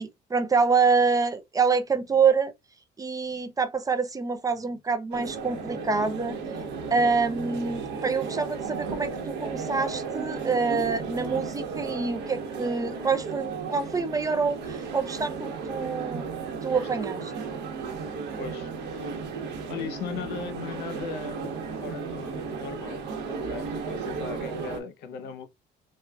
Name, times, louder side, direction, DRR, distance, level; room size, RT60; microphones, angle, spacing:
voice 1, 0.0-2.5 3.0-6.4 6.9-16.3 16.6-17.3, right 5 dB, 20° right, 0.5 m, -26 dB
sound 1, 5.1-24.8, right 5 dB, 80° right, 1.1 m, -34 dB
voice 2, 18.4-19.2 19.7-25.5, left 6 dB, 80° left, 0.9 m, -38 dB
4.5 x 2.3 x 2.3 m
cardioid pair, 110°, 17 cm